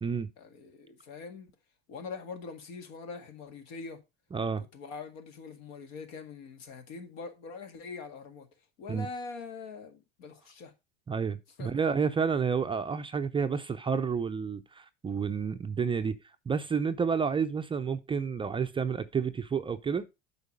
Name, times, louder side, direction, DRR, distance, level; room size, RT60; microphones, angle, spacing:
voice 1, 0.4-1.5 1.9-4.0 4.7-8.5 8.8-10.7 11.6-11.7, left 4 dB, 60° left, 2.0 m, -43 dB
voice 2, 4.3-4.6 8.9-9.1 11.1-16.2 16.5-20.1, right 6 dB, 15° right, 0.5 m, -30 dB
8.1 x 5.2 x 5.1 m
hypercardioid pair, 90°, 31 cm